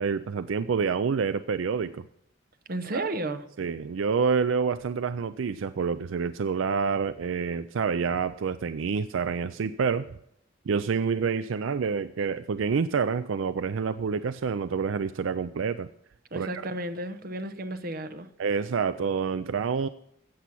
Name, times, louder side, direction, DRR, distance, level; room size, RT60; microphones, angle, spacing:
voice 1, 0.0-2.0 2.9-3.1 3.6-10.2 10.7-15.9 16.4-16.6 18.4-19.9, right 5 dB, 75° right, 13 dB, 0.4 m, -28 dB
voice 2, 2.7-3.5 16.3-18.3, right 1 dB, 50° right, 9 dB, 0.9 m, -33 dB
14.5 x 8.2 x 6.0 m, 0.74 s
head